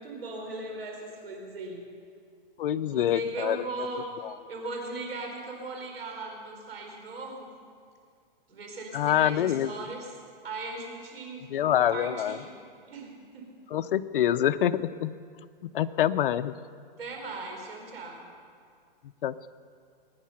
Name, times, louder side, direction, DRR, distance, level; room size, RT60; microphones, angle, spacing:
voice 1, 0.0-1.8 2.7-4.1 4.5-7.5 8.5-10.1 10.4-11.4 11.7-12.6 12.9-13.1 13.3-13.5 17.0-18.3, right 3 dB, 90° right, 1 dB, 4.6 m, -38 dB
voice 2, 2.6-3.6 4.2-4.3 8.9-9.7 11.5-12.4 13.7-15.1 15.6-16.5 19.2-19.5, left 11 dB, 65° left, 9 dB, 0.6 m, -26 dB
22.0 x 9.4 x 5.8 m, 2.2 s
hypercardioid pair, 165°, 29 cm